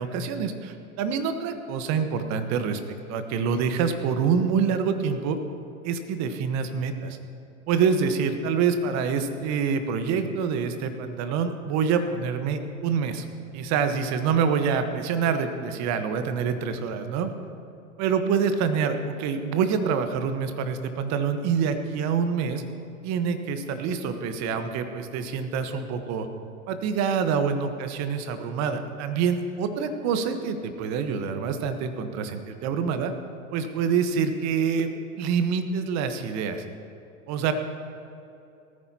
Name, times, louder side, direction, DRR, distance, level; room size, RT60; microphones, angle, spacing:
voice 1, 0.0-2.8 3.1-5.4 5.8-7.2 7.7-13.2 13.5-17.3 18.0-22.6 23.0-26.3 26.7-33.1 33.5-34.9 35.2-36.6 37.3-37.5, right 6 dB, 40° right, 8 dB, 1.3 m, -26 dB
18.5 x 14.5 x 2.9 m, 2.7 s
hypercardioid pair, 90°, 40 cm